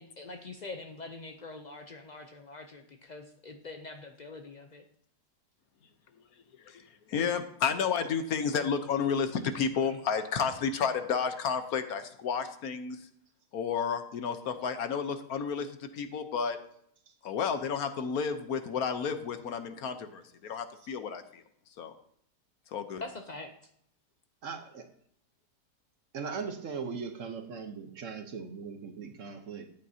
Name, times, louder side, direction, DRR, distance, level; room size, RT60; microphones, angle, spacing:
voice 1, 0.0-4.8 23.0-23.5, left 3 dB, 85° left, 4 dB, 0.3 m, -44 dB
voice 2, 6.6-13.0 13.5-16.6 17.2-21.4 21.8-21.9 22.7-23.0, left 6 dB, 65° left, 9 dB, 1.2 m, -31 dB
voice 3, 24.4-24.9 26.1-29.7, right 5 dB, 55° right, 7 dB, 1.1 m, -39 dB
13.5 x 8.7 x 2.7 m, 0.68 s
omnidirectional pair, 1.8 m